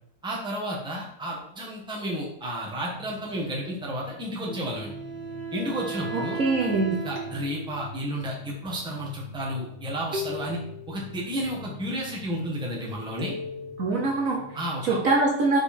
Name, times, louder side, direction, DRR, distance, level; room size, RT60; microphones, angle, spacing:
voice 1, 0.2-4.9 5.5-6.4 6.9-10.6 10.9-13.3 14.5-15.0, equal, 5° right, -3 dB, 1.2 m, -32 dB
sound 1, 2.7-15.0, left 1 dB, 20° right, 1.7 m, -45 dB
Wind instrument woodwind instrument, 4.4-8.0, right 4 dB, 45° left, 1.6 m, -36 dB
sound 2, 5.2-5.3 7.2-8.5 10.1-12.1 13.2-14.6, left 4 dB, 85° right, 1.6 m, -40 dB
voice 2, 6.1-7.0 13.8-14.4 14.8-15.6, right 3 dB, 55° right, -1 dB, 1.2 m, -23 dB
4.9 x 4.8 x 4.3 m, 0.74 s
omnidirectional pair, 1.9 m